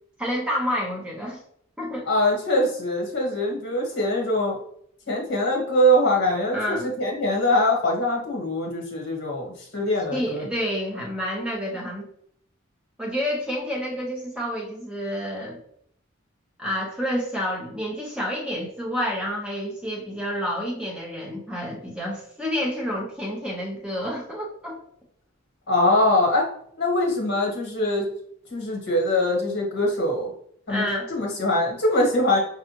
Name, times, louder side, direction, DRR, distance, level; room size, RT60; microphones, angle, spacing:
voice 1, 0.2-1.4 1.8-2.1 6.5-6.9 10.1-12.1 13.0-15.6 16.6-24.8 30.7-31.1, equal, 5° right, -2 dB, 0.8 m, -29 dB
voice 2, 2.1-4.6 5.1-10.4 25.7-26.5 26.8-28.1 28.5-30.3 30.7-30.8 31.1-32.4, left 1 dB, 55° left, -1 dB, 1.2 m, -23 dB
5.5 x 2.4 x 2.9 m, 0.66 s
head